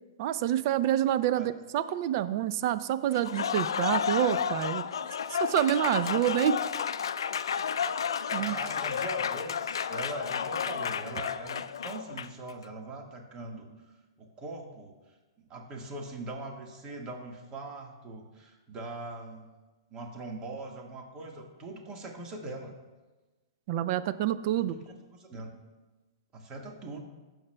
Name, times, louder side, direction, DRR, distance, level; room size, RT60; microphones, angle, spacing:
voice 1, 0.2-4.8 5.3-6.6 8.3-8.6 23.7-24.7, right 11 dB, 50° right, 13 dB, 0.4 m, -27 dB
Applause, 3.1-12.5, left 7 dB, 80° left, 0.3 m, -31 dB
voice 2, 8.3-19.5 19.9-22.7 24.5-25.6 26.3-27.0, right 2 dB, 30° right, 2 dB, 1.5 m, -42 dB
16.0 x 7.2 x 2.2 m, 1.2 s
hypercardioid pair, 125°, 2 cm